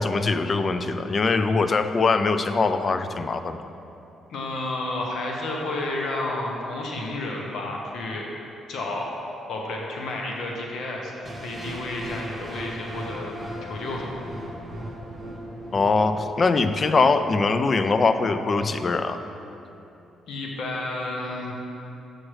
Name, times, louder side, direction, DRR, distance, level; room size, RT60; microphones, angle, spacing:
voice 1, 0.0-3.6 15.7-19.2, left 4 dB, 40° left, 9 dB, 0.3 m, -22 dB
voice 2, 4.3-8.3 8.7-9.1 9.5-11.1 11.4-14.2 20.3-21.5, left 2 dB, 70° left, -1 dB, 0.9 m, -31 dB
sound 1, 11.2-17.2, right 1 dB, 15° right, 1.2 m, -38 dB
7.3 x 6.2 x 3.2 m, 2.9 s
cardioid pair, 90°, 0 cm